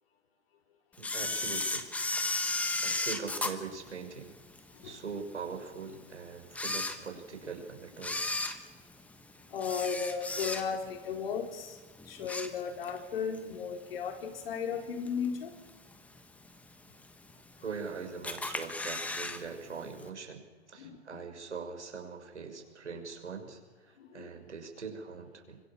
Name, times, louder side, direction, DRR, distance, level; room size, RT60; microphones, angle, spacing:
Camera, 1.0-4.6 5.1-5.2 5.9-6.0 6.4-7.5 7.9-11.0 11.3-11.6 12.0-13.0 13.3-13.4 14.4-14.5 15.1-15.5 15.9-16.0 16.2-16.3 16.4-16.5 17.3-17.8 18.2-19.4 19.7-19.8 20.0-20.1, left 2 dB, 5° left, 1.3 m, -34 dB
voice 1, 1.0-1.9 2.4-4.3 4.8-8.4 17.6-23.6 23.9-25.6, right 5 dB, 80° right, 4 dB, 6.2 m, -42 dB
voice 2, 9.5-11.8 12.1-15.6 20.8-21.3 24.0-24.3, left 6 dB, 55° left, 3 dB, 5.0 m, -35 dB
25.0 x 25.0 x 7.3 m, 1.3 s
hypercardioid pair, 135°, 34 cm